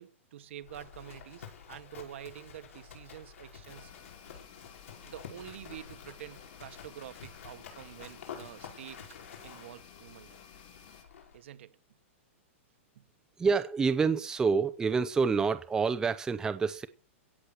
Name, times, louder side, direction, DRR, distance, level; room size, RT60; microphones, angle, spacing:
voice 1, 0.0-3.9 5.0-9.0 9.4-10.4 11.3-11.8 12.9-13.1, right 12 dB, 65° right, 1.4 m, -47 dB
Livestock farm animals working animals, 0.6-11.4, left 7 dB, 85° left, 5.1 m, -49 dB
sound 1, 3.7-11.0, left 7 dB, 40° left, 2.6 m, -55 dB
voice 2, 13.4-16.9, right 5 dB, 10° right, 0.7 m, -27 dB
16.5 x 7.5 x 6.6 m
hypercardioid pair, 160°, 7 cm